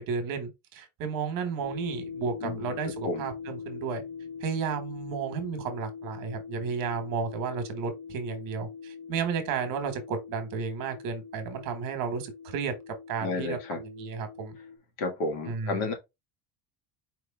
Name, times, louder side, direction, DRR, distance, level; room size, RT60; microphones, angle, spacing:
voice 1, 0.0-4.0 4.4-12.7 13.1-14.6 15.5-15.8, right 6 dB, 45° right, 1.3 m, -33 dB
sound 1, 1.6-14.8, left 6 dB, 45° left, 0.9 m, -42 dB
voice 2, 2.4-3.3 13.2-13.8 15.0-15.9, left 3 dB, 85° left, 2.1 m, -32 dB
4.6 x 3.2 x 3.5 m
cardioid pair, 180°, 44 cm